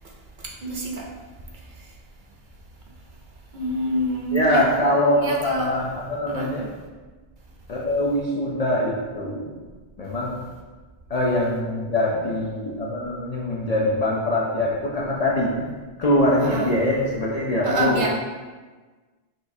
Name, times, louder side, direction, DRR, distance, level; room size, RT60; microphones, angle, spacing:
voice 1, 0.4-1.1 3.5-4.7 5.2-5.7 6.3-6.5 16.4-16.7 17.6-18.1, right 2 dB, 55° right, -1 dB, 0.7 m, -26 dB
voice 2, 4.3-6.7 7.7-9.6 10.0-10.4 11.1-15.7 16.0-18.0, left 1 dB, 55° left, -4 dB, 0.5 m, -23 dB
6.2 x 2.4 x 2.6 m, 1.3 s
omnidirectional pair, 1.1 m